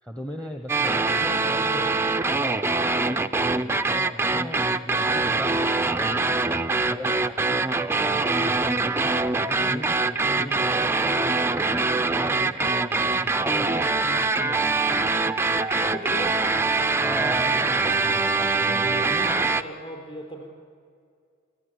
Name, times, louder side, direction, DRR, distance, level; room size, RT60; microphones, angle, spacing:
voice 1, 0.0-1.9 2.4-2.9 3.4-6.2 6.9-11.7 12.1-14.7 17.0-19.6, equal, 5° left, 5 dB, 1.0 m, -38 dB
sound 1, 0.7-19.6, right 3 dB, 10° right, 0.5 m, -23 dB
voice 2, 0.8-1.9 15.8-16.4 18.9-20.5, equal, 30° left, 2 dB, 4.6 m, -37 dB
24.0 x 14.5 x 9.7 m, 2.3 s
head